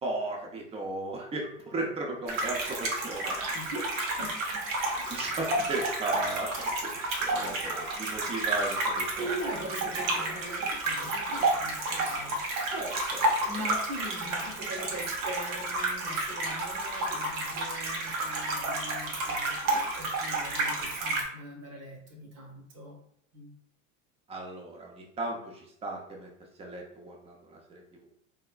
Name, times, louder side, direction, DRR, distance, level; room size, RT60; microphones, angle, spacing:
voice 1, 0.0-3.4 4.2-4.3 5.1-6.9 7.2-9.3 10.2-10.3 12.7-13.5 24.3-28.1, right 2 dB, 15° right, -1 dB, 0.6 m, -36 dB
sound 1, 2.3-21.2, right 2 dB, 75° right, 1.0 m, -31 dB
voice 2, 3.4-3.8 4.2-4.6 5.0-5.3 9.2-12.7 13.4-23.0 23.3-23.5, right 1 dB, 35° right, 0 dB, 1.0 m, -41 dB
3.4 x 2.7 x 2.3 m, 0.69 s
hypercardioid pair, 105°, 41 cm